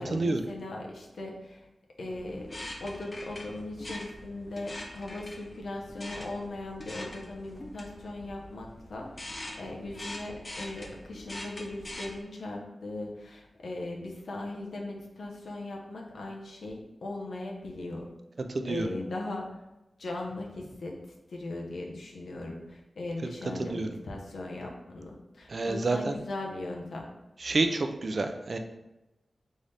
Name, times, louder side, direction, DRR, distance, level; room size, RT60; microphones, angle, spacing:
voice 1, 0.0-1.7 2.0-18.1 18.6-19.5 20.0-21.0 21.3-27.1, left 2 dB, 85° left, 0 dB, 0.8 m, -39 dB
sound 1, 2.1-12.2, left 1 dB, 40° left, 0.6 m, -43 dB
voice 2, 18.5-18.9 23.6-23.9 25.5-26.2 27.4-28.6, right 3 dB, 55° right, 6 dB, 0.4 m, -28 dB
4.0 x 3.7 x 3.4 m, 0.98 s
wide cardioid pair, 65°, 0 cm